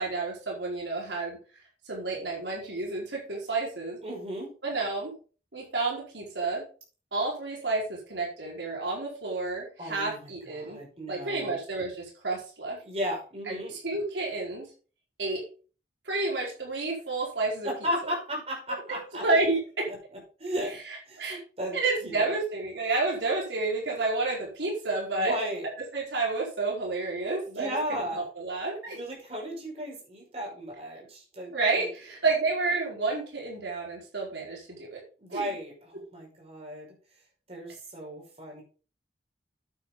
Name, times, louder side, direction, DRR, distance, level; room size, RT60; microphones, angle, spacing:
voice 1, 0.0-1.4 1.8-4.0 4.6-5.1 5.5-6.6 7.1-10.8 11.1-12.8 13.5-14.7 15.2-15.4 16.0-17.7 18.0-18.1 18.9-19.9 20.9-21.4 21.7-25.3 25.9-29.0 31.5-35.0 35.3-35.5, right 3 dB, 80° right, -2 dB, 4.6 m, -30 dB
voice 2, 4.0-4.5 9.8-10.3 10.6-11.6 12.8-13.7 17.6-19.2 19.9-20.0 20.4-20.8 21.1-21.8 22.0-22.4 25.2-25.7 27.5-28.3 28.9-31.9 35.2-36.9 37.5-38.6, equal, 35° right, -1 dB, 5.4 m, -35 dB
10.0 x 8.9 x 3.9 m, 0.36 s
head